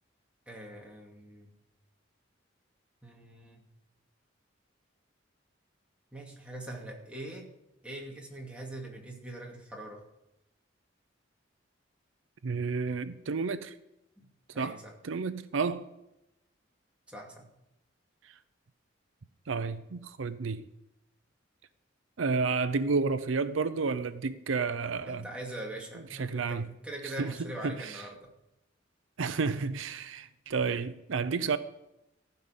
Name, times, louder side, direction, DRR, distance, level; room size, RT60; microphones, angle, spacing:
voice 1, 0.5-1.5 3.0-3.6 6.1-7.5 7.8-10.0 14.2-14.3 14.5-14.9 17.1-17.5 24.9-28.3, right 1 dB, 5° right, 2.5 m, -42 dB
voice 2, 12.4-13.7 14.6-14.8 15.0-15.9 18.2-18.3 19.5-20.7 22.2-25.3 26.2-26.7 27.2-28.0 29.2-31.6, right 4 dB, 85° right, 0.6 m, -31 dB
15.0 x 5.6 x 8.2 m
head